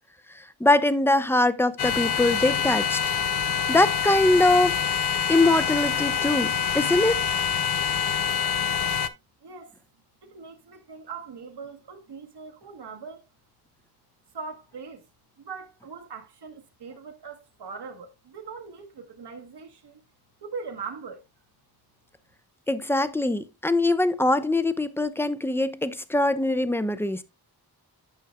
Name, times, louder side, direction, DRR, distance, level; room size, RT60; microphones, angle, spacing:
voice 1, 0.6-3.0 3.7-4.8 5.3-7.2 22.7-27.2, left 2 dB, 5° left, 0.5 m, -22 dB
sound 1, 1.8-9.1, left 7 dB, 70° left, 0.6 m, -26 dB
voice 2, 9.4-9.7 10.2-13.2 14.3-15.1 15.4-20.0 20.4-21.2, right 5 dB, 80° right, 1.2 m, -40 dB
9.3 x 6.1 x 2.2 m
wide cardioid pair, 110°, 40 cm